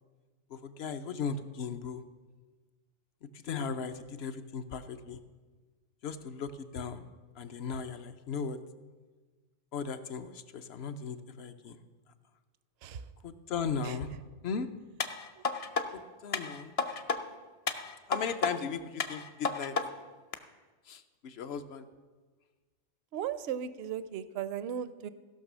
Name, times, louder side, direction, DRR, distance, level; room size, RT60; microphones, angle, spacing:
voice 1, 0.5-2.0 3.4-5.2 6.0-7.1 7.4-8.6 9.7-11.8 13.2-14.1 14.4-14.7 15.9-16.7 18.1-19.7 20.9-21.9, left 6 dB, 65° left, 10 dB, 0.9 m, -37 dB
sound 1, 15.0-15.9 16.3-17.2 17.7-18.5 19.0-19.9 20.3-20.4, left 4 dB, 40° left, 0.6 m, -32 dB
voice 2, 23.1-25.1, right 9 dB, 65° right, 14 dB, 0.8 m, -36 dB
15.5 x 6.0 x 6.1 m, 1.4 s
omnidirectional pair, 1.2 m